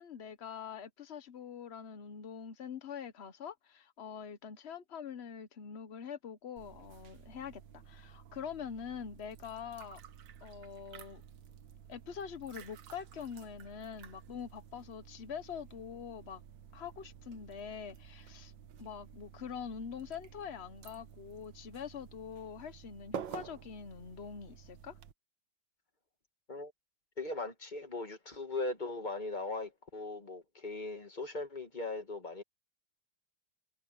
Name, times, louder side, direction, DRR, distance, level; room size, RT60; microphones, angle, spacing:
voice 1, 0.0-10.0 10.4-11.2 11.9-16.4 16.7-18.5 18.8-25.0, left 7 dB, 75° left, 0.5 m, -44 dB
sound 1, 6.6-25.1, right 8 dB, 60° right, 1.6 m, -51 dB
voice 2, 27.2-32.4, left 3 dB, 20° left, 2.1 m, -39 dB
omnidirectional pair, 2.4 m